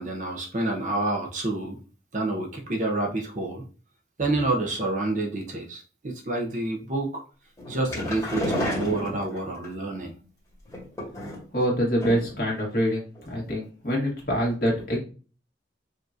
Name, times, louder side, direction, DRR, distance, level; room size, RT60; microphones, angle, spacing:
voice 1, 0.0-1.8 2.1-3.6 4.2-7.2 7.7-10.1, right 2 dB, 45° right, 0 dB, 0.9 m, -28 dB
sound 1, 7.6-9.7 10.7-11.6 12.0-12.4 12.7-12.8 13.1-13.2, left 1 dB, 20° left, 1.7 m, -31 dB
voice 2, 11.5-15.0, equal, 55° left, -3 dB, 1.8 m, -25 dB
5.0 x 2.9 x 2.5 m, 0.37 s
head